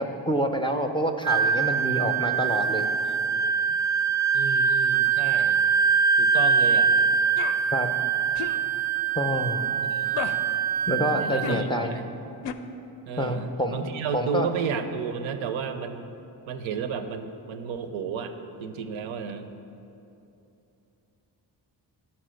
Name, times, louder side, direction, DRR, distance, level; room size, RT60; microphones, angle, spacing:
voice 1, 0.0-3.2 7.7-7.9 9.1-9.6 10.9-12.0 13.2-13.9 14.1-14.5, equal, 10° left, 5 dB, 0.5 m, -27 dB
Wind instrument woodwind instrument, 1.2-11.6, right 6 dB, 45° right, 0.4 m, -23 dB
voice 2, 4.3-5.6 6.2-6.9 9.9-10.4 11.2-12.0 13.1-16.1 16.5-18.3 18.6-19.5, right 6 dB, 85° right, 8 dB, 0.6 m, -32 dB
sound 1, 7.4-7.6 8.3-8.6 10.1-10.4 11.4-11.7 12.4-12.5, left 8 dB, 65° left, 0.5 m, -32 dB
6.0 x 4.2 x 6.3 m, 2.8 s
cardioid pair, 55°, 46 cm